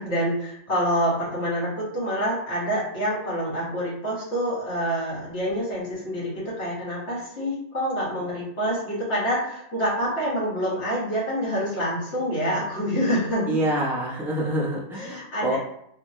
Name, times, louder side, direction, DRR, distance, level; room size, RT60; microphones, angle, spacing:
voice 1, 0.0-13.6 14.9-15.6, equal, 70° left, -8 dB, 1.7 m, -27 dB
voice 2, 13.5-15.6, right 1 dB, ahead, -5 dB, 0.5 m, -26 dB
3.3 x 2.2 x 2.7 m, 0.73 s
omnidirectional pair, 1.2 m